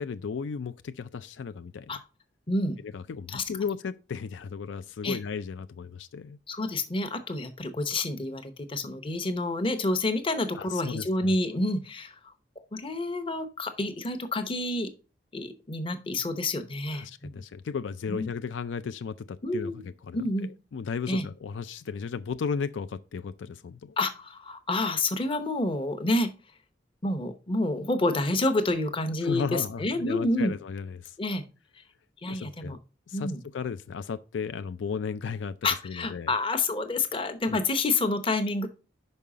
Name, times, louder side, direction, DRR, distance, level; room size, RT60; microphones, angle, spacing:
voice 1, 0.0-2.0 2.8-6.4 10.6-11.4 16.9-24.0 29.2-31.1 32.3-32.8 33.1-35.5 35.8-36.3 37.5-37.6, left 5 dB, 75° left, 0.4 m, -35 dB
voice 2, 2.5-2.8 3.3-3.4 5.0-5.2 6.5-12.2 12.7-14.9 15.3-17.3 18.1-18.3 19.4-19.8 20.1-20.5 21.1-21.2 24.0-26.3 27.0-30.5 31.2-31.4 32.2-32.8 33.1-33.4 35.6-38.7, left 2 dB, 30° left, 0.8 m, -28 dB
5.5 x 5.4 x 4.8 m
head